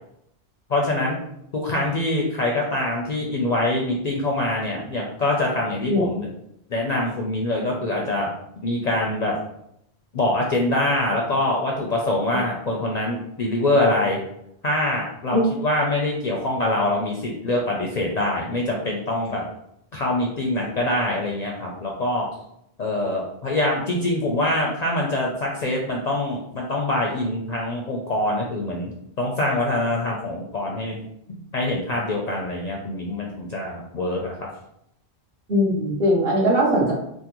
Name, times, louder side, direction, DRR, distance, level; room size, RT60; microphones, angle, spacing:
voice 1, 0.7-1.2 1.5-6.3 6.7-8.3 8.6-9.4 10.1-14.2 14.6-19.4 19.9-22.3 22.8-31.0 31.5-34.3, left 1 dB, 55° left, -1 dB, 0.5 m, -24 dB
voice 2, 35.5-36.9, equal, 60° right, -5 dB, 1.3 m, -20 dB
3.6 x 2.1 x 2.9 m, 0.76 s
omnidirectional pair, 1.1 m